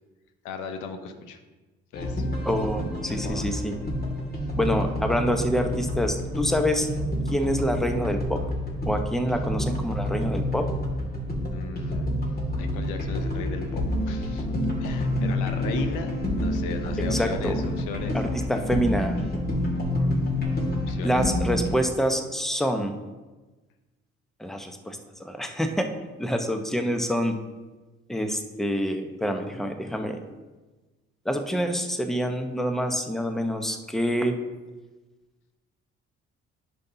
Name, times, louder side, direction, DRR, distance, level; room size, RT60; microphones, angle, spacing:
voice 1, 0.4-1.4 1.9-2.3 3.0-3.5 11.5-12.1 12.6-14.5 14.8-16.1 16.4-18.2 20.9-21.2, left 5 dB, 75° left, 7 dB, 0.9 m, -36 dB
sound 1, 1.9-21.7, left 1 dB, 30° left, 2.3 m, -28 dB
voice 2, 2.5-3.7 4.5-6.9 7.3-8.4 8.9-10.6 17.1-17.5 18.1-19.4 21.0-22.9 24.4-25.9 26.2-27.3 28.1-30.2 31.2-34.3, equal, ahead, 5 dB, 1.0 m, -26 dB
10.5 x 5.7 x 2.8 m, 1.2 s
hypercardioid pair, 50°, 31 cm